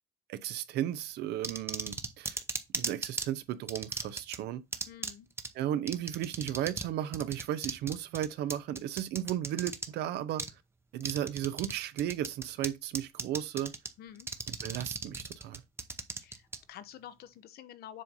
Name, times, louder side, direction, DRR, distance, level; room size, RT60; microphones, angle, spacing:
voice 1, 0.3-2.4 2.7-4.6 5.5-10.4 10.9-13.7 14.6-15.6, right 11 dB, 80° right, 0.7 m, -34 dB
sound 1, 1.4-3.3 3.7-4.4 4.7-5.1 5.4-5.5 5.9-6.9 7.1-9.9 10.4-10.5 11.0-11.7 12.0-12.7 12.9-13.9 14.2-16.6, right 3 dB, 15° right, 0.8 m, -35 dB
voice 2, 4.8-5.3 14.0-14.3 16.2-18.0, left 11 dB, 65° left, 0.8 m, -49 dB
7.5 x 2.7 x 5.3 m
cardioid pair, 110°, 17 cm